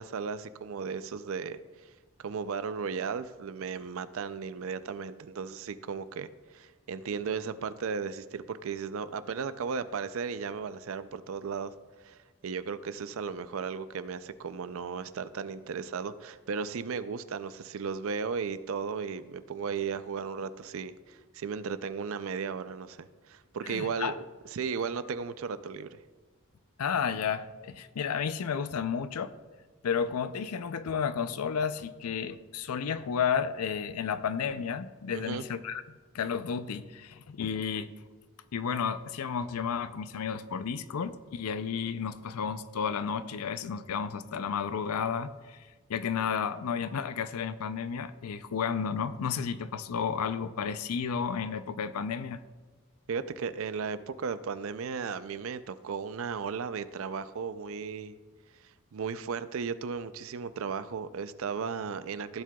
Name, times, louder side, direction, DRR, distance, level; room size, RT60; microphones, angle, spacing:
voice 1, 0.0-1.9 2.2-11.7 12.0-12.2 12.4-24.1 24.5-26.0 35.1-35.4 53.1-58.2 58.9-62.4, right 5 dB, 65° right, 13 dB, 0.4 m, -35 dB
voice 2, 23.6-24.1 26.8-29.3 29.8-35.8 36.1-37.9 38.5-45.6 45.9-52.4, left 6 dB, 85° left, 13 dB, 0.5 m, -32 dB
15.5 x 7.5 x 2.3 m, 1.4 s
head